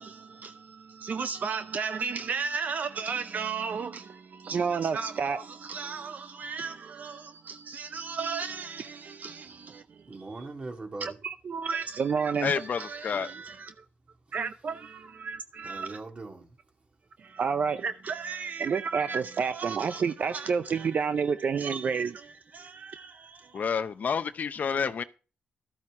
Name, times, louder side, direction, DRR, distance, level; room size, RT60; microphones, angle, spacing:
voice 1, 0.0-10.1 11.0-13.8 14.3-16.0 17.2-23.6, right 6 dB, 55° right, 0.5 m, -32 dB
voice 2, 10.1-11.2 14.3-14.4 15.6-16.6 24.6-24.9, right 3 dB, 35° right, 2.1 m, -41 dB
voice 3, 12.4-13.3 23.5-25.0, left 6 dB, 55° left, 0.6 m, -29 dB
12.5 x 8.8 x 3.7 m
cardioid pair, 80°, 3 cm